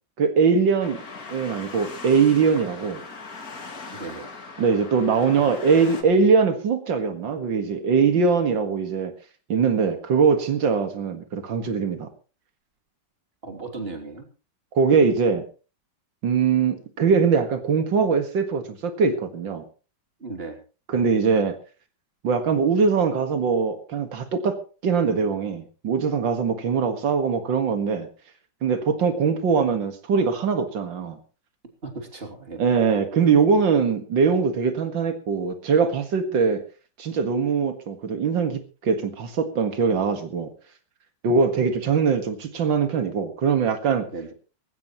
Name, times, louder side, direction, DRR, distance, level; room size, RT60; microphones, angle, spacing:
voice 1, 0.2-1.0 1.3-3.0 4.6-9.1 9.5-12.1 14.7-15.4 16.2-19.6 20.9-21.5 22.2-24.6 24.8-28.1 28.6-31.2 32.6-36.6 37.0-40.5 41.2-44.1, right 5 dB, 90° right, 8 dB, 2.4 m, -22 dB
sound 1, 0.8-6.0, left 4 dB, 50° left, 2.7 m, -40 dB
voice 2, 3.9-4.3 13.4-14.3 20.2-20.6 31.8-32.6 44.1-44.3, right 3 dB, 30° right, 4 dB, 3.3 m, -36 dB
19.5 x 16.5 x 3.1 m, 0.34 s
omnidirectional pair, 2.0 m